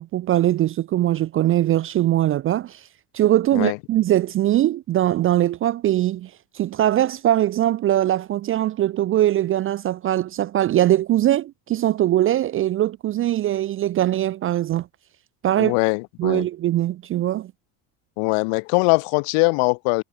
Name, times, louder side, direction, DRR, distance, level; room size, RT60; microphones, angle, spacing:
voice 1, 0.0-2.9 3.1-14.9 15.4-15.7 16.2-17.5, right 13 dB, 30° right, 0.4 m, -21 dB
voice 2, 15.6-16.5 18.2-20.0, left 34 dB, 80° left, 3.8 m, -21 dB
cardioid pair, 165°, 48 cm